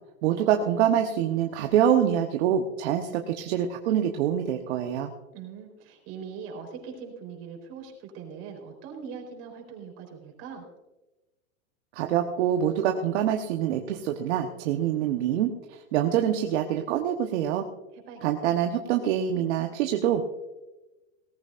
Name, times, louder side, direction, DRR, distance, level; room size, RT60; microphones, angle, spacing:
voice 1, 0.2-5.1 11.9-17.6 18.2-20.3, right 9 dB, 55° right, 4 dB, 1.2 m, -25 dB
voice 2, 5.0-10.7 17.9-18.2, right 6 dB, 35° right, 1 dB, 4.2 m, -41 dB
18.5 x 15.0 x 2.6 m, 1.1 s
supercardioid pair, 150°, 40 cm